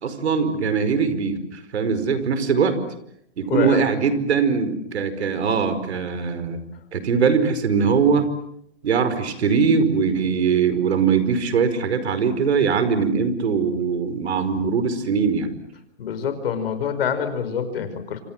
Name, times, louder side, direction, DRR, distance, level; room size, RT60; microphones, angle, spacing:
voice 1, 0.0-2.8 3.4-6.6 6.9-8.3 8.8-15.5, right 5 dB, 70° right, 12 dB, 5.2 m, -21 dB
voice 2, 3.5-3.8 16.0-18.2, left 7 dB, 60° left, 10 dB, 5.4 m, -26 dB
27.5 x 27.0 x 7.5 m, 0.72 s
hypercardioid pair, 155°, 34 cm